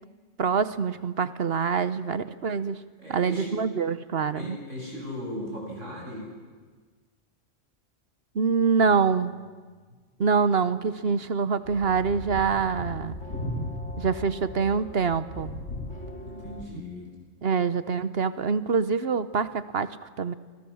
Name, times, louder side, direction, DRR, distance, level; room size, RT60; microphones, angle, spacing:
voice 1, 0.4-2.8 3.1-4.6 8.3-9.3 10.2-13.1 14.0-15.5 17.4-20.3, right 5 dB, 55° right, 13 dB, 1.1 m, -25 dB
voice 2, 3.0-3.6 4.3-6.3 8.6-9.0 16.2-17.1, left 1 dB, 75° right, -1 dB, 7.9 m, -37 dB
sound 1, 11.7-16.6, left 1 dB, 70° left, 3.1 m, -37 dB
29.0 x 24.0 x 7.2 m, 1.5 s
omnidirectional pair, 1.3 m